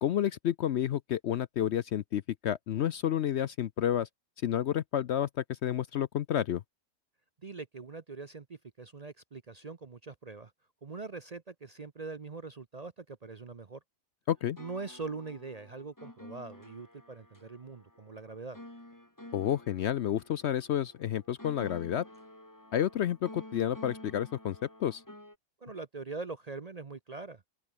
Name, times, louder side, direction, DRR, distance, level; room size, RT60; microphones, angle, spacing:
voice 1, 0.0-4.1 4.4-6.6 14.3-14.6 19.3-22.1 22.7-25.0, left 10 dB, 60° left, 0.8 m, -30 dB
voice 2, 7.4-10.5 10.8-13.8 14.6-18.6 25.6-27.4, right 4 dB, 35° right, 0.7 m, -42 dB
sound 1, 14.4-25.3, left 1 dB, 15° left, 3.2 m, -51 dB
open air
omnidirectional pair, 1.5 m